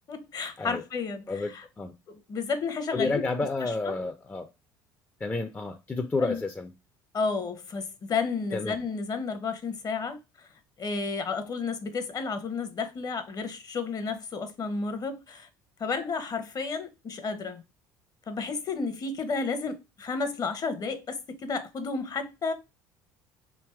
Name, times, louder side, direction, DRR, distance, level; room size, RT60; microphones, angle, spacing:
voice 1, 0.1-1.7 2.1-3.2 3.6-4.0 6.2-6.4 7.1-10.5 10.8-15.5 15.8-17.6 18.3-22.5, left 4 dB, 40° left, 0.8 m, -32 dB
voice 2, 1.3-1.9 2.9-4.5 5.2-6.7 8.5-8.8, left 3 dB, 15° left, 0.5 m, -30 dB
3.4 x 2.8 x 3.3 m
hypercardioid pair, 65°, 10 cm